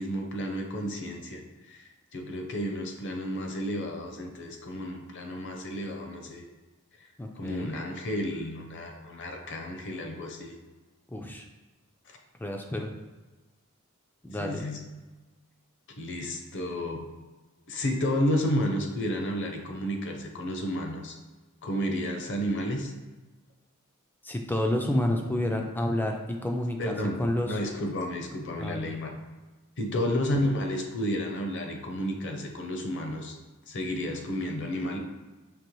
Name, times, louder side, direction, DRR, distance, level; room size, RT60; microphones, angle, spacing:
voice 1, 0.0-6.4 7.4-10.5 12.1-12.2 14.4-14.8 16.0-17.1 17.7-21.2 21.6-22.9 26.8-29.1 29.8-33.3 33.7-35.0, equal, 60° left, 3 dB, 0.7 m, -31 dB
voice 2, 7.2-7.7 11.1-11.4 12.4-13.0 14.2-14.7 24.2-26.9 27.2-27.6 28.6-28.9 29.9-30.0, left 1 dB, 10° left, 2 dB, 0.3 m, -29 dB
5.3 x 2.9 x 3.1 m, 1.2 s
head